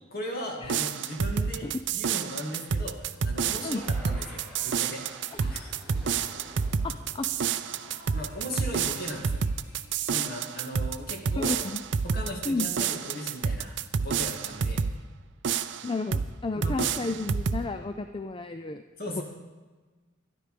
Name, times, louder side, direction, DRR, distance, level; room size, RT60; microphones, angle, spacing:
voice 1, 0.1-5.7 6.4-6.6 8.1-9.5 10.1-11.5 12.0-13.7 14.0-14.8 16.5-17.1 19.0-19.2, equal, 45° left, 0 dB, 2.5 m, -38 dB
sound 1, 0.6-15.0 15.4-16.3 16.6-17.6, right 6 dB, 60° right, 0.5 m, -29 dB
sound 2, 3.7-9.0, equal, 5° left, 3.0 m, -50 dB
voice 2, 6.8-7.3 11.4-11.8 12.4-12.7 15.8-18.8 19.1-19.2, left 3 dB, 25° left, 8 dB, 0.4 m, -32 dB
sound 3, 7.3-12.0, equal, 65° left, 3.1 m, -56 dB
13.0 x 11.0 x 5.1 m, 1.3 s
head